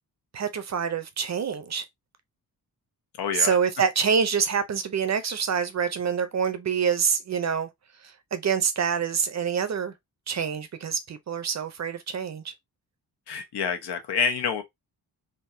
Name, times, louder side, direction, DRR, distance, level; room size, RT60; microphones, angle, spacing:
voice 1, 0.3-1.8 3.3-7.7 8.0-9.9 10.3-12.5, right 6 dB, 45° right, 0.6 m, -26 dB
voice 2, 3.2-3.6 13.3-14.6, left 6 dB, 75° left, 1.0 m, -27 dB
3.6 x 2.6 x 2.6 m
cardioid pair, 115°, 39 cm